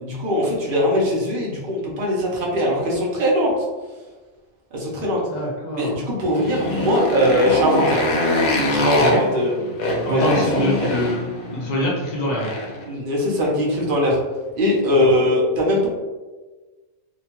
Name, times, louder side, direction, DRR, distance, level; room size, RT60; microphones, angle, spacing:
voice 1, 0.0-3.5 4.7-5.2 5.8-8.0 8.7-9.5 9.9-10.9 12.9-14.2 14.6-15.9, equal, 50° right, -3 dB, 0.7 m, -21 dB
voice 2, 5.3-5.9 9.1-9.2 10.1-12.5 15.0-15.1, left 1 dB, 60° left, -3 dB, 0.4 m, -25 dB
Motorcycle, 6.2-12.8, left 1 dB, 80° left, 1.1 m, -23 dB
2.8 x 2.2 x 2.9 m, 1.3 s
omnidirectional pair, 1.5 m